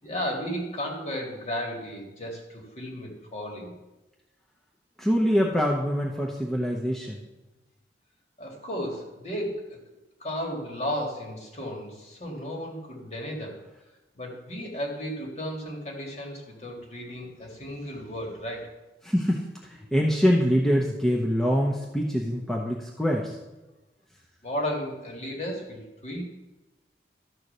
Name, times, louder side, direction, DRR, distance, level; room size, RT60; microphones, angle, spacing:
voice 1, 0.0-3.7 8.4-9.8 10.2-13.6 14.2-18.7 24.4-26.3, equal, 35° left, 0 dB, 2.0 m, -34 dB
voice 2, 5.0-7.2 19.0-19.4 19.9-23.3, equal, ahead, -3 dB, 0.8 m, -24 dB
12.5 x 4.6 x 6.7 m, 1.1 s
head